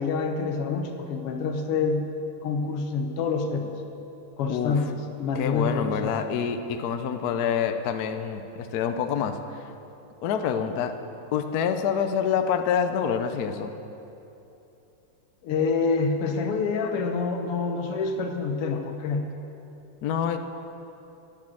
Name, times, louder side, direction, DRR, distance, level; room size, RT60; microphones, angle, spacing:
voice 1, 0.0-2.1 2.4-3.7 4.4-6.2 15.4-19.3, left 4 dB, 90° left, 5 dB, 2.0 m, -27 dB
voice 2, 4.5-4.9 5.3-9.7 10.2-10.9 11.3-13.7 20.0-20.4, left 7 dB, 65° left, 7 dB, 1.0 m, -27 dB
11.5 x 9.7 x 7.7 m, 2.9 s
omnidirectional pair, 2.4 m